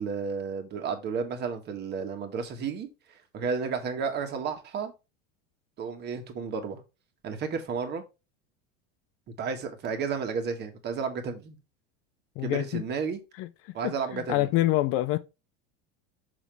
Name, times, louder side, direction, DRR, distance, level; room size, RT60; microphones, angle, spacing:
voice 1, 0.0-2.9 3.3-4.9 5.8-6.8 7.2-8.0 9.4-11.6 12.4-13.2 13.7-14.5, right 5 dB, 35° right, 1.7 m, -32 dB
voice 2, 12.4-12.8 13.4-13.5 13.8-15.2, left 16 dB, 45° left, 0.6 m, -26 dB
6.3 x 6.0 x 3.5 m
supercardioid pair, 145°, 31 cm